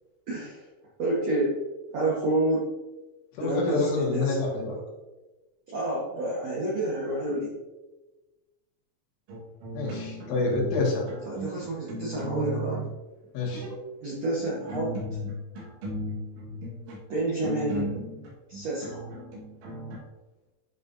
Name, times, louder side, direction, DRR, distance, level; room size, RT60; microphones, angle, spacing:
voice 1, 0.3-0.7 1.0-1.6 1.9-2.7 3.4-4.5 5.7-7.6 11.3-12.9 14.0-14.9 17.1-17.9 18.5-19.1, right 1 dB, 75° right, -6 dB, 1.5 m, -29 dB
voice 2, 3.4-4.8 9.7-11.1 13.3-13.7, left 2 dB, 90° left, -2 dB, 4.2 m, -27 dB
sound 1, 9.3-10.8 11.1-12.9 13.4-13.8 14.4-20.0, equal, 90° right, 4.1 m, -36 dB
10.5 x 5.4 x 2.7 m, 1.1 s
omnidirectional pair, 5.2 m